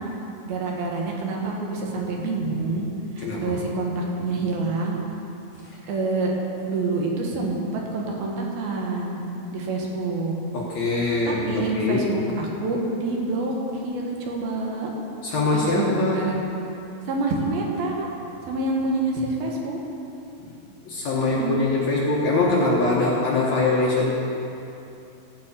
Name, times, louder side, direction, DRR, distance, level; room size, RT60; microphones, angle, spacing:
voice 1, 0.5-2.9 3.2-5.0 5.9-6.3 6.7-9.2 9.5-10.4 11.3-14.9 15.5-16.4 17.1-18.1 18.4-19.8 21.1-21.6, right 3 dB, 75° right, -1 dB, 3.3 m, -27 dB
voice 2, 3.2-3.5 10.5-12.1 15.2-16.3 20.4-20.6 20.8-24.1, left 3 dB, 60° left, -4 dB, 2.0 m, -23 dB
14.5 x 5.3 x 8.4 m, 2.8 s
omnidirectional pair, 4.4 m